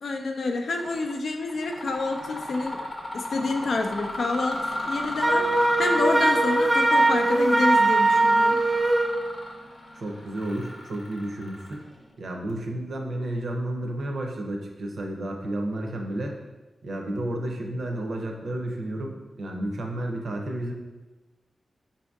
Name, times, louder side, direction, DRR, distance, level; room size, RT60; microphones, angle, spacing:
voice 1, 0.0-2.8 3.1-5.5 5.8-8.6, left 3 dB, 75° left, 3 dB, 0.4 m, -28 dB
Mechanisms, 0.8-1.1 1.5-12.0, left 1 dB, 50° left, 0.7 m, -34 dB
Wind instrument woodwind instrument, 5.2-9.1, right 2 dB, 10° right, 0.5 m, -21 dB
voice 2, 9.9-11.8 12.2-16.4 16.8-20.7, right 1 dB, 65° right, 2 dB, 0.5 m, -31 dB
5.3 x 2.6 x 2.3 m, 1.2 s
wide cardioid pair, 110°, 0 cm